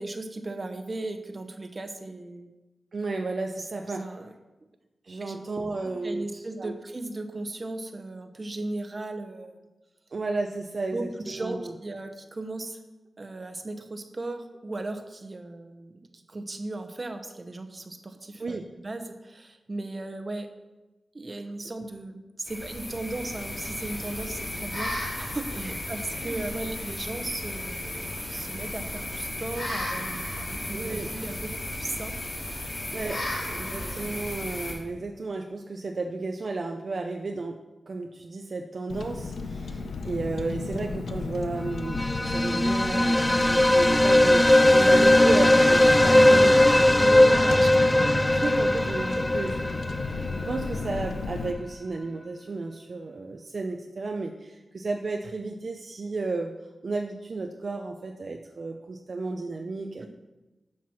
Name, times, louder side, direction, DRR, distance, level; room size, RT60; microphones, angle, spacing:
voice 1, 0.0-2.5 3.9-4.3 5.2-5.4 5.8-9.6 10.9-12.8 13.2-20.5 21.1-32.2 32.5-32.9 33.6-34.2 46.1-46.7 47.4-48.2, right 2 dB, 35° right, 6 dB, 0.9 m, -37 dB
voice 2, 2.9-4.0 5.0-6.7 10.1-11.7 18.4-18.7 25.6-25.7 26.1-26.4 30.7-31.1 32.9-33.2 33.5-37.6 37.9-47.6 48.0-49.6 50.2-56.5 56.8-60.1, right 3 dB, 55° right, 3 dB, 0.6 m, -33 dB
sound 1, 22.5-34.7, left 1 dB, 60° left, 2.6 m, -34 dB
Car, 38.9-51.5, left 4 dB, 80° left, 0.6 m, -34 dB
sound 2, 41.8-50.6, left 1 dB, 15° left, 0.3 m, -19 dB
7.5 x 5.9 x 5.8 m, 1.1 s
cardioid pair, 70°, 0 cm